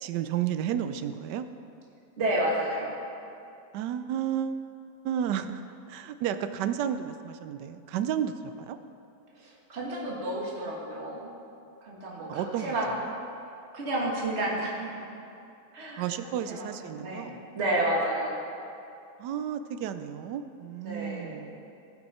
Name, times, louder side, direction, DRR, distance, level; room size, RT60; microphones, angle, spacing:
voice 1, 0.0-1.4 3.7-4.6 5.0-5.6 5.9-8.8 12.3-12.7 13.1-13.2 16.0-17.4 19.2-21.6, right 9 dB, 80° right, 10 dB, 1.2 m, -32 dB
voice 2, 2.2-3.0 9.3-11.3 11.8-12.9 13.7-15.1 15.7-18.4 20.8-21.4, right 1 dB, 40° right, -4 dB, 1.9 m, -31 dB
17.0 x 6.0 x 4.2 m, 2.6 s
omnidirectional pair, 1.8 m